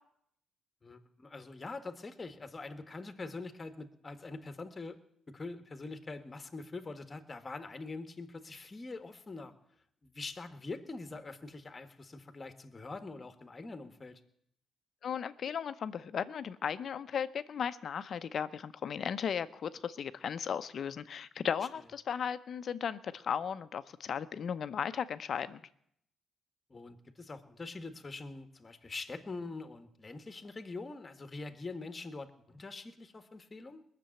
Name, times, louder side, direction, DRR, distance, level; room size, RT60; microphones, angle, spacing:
voice 1, 0.8-5.0 5.3-9.5 10.0-14.2 26.7-33.8, left 3 dB, 25° left, 9 dB, 1.5 m, -44 dB
voice 2, 15.0-25.6, left 7 dB, 55° left, 12 dB, 0.7 m, -36 dB
20.0 x 6.9 x 8.9 m, 0.71 s
cardioid pair, 90°, 0 cm